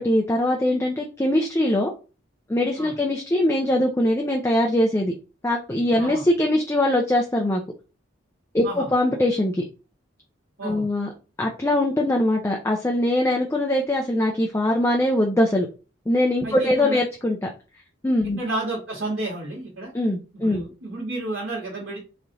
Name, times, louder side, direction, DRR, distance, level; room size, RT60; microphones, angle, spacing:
voice 1, 0.0-1.9 2.5-5.1 5.4-7.6 8.5-9.7 10.6-11.1 11.4-15.7 16.1-17.5 18.0-18.4 19.9-20.6, left 1 dB, 15° left, 1 dB, 0.3 m, -22 dB
voice 2, 16.4-17.0 18.4-19.9 20.3-22.0, right 2 dB, 75° right, -7 dB, 1.4 m, -31 dB
3.2 x 2.4 x 3.8 m, 0.33 s
head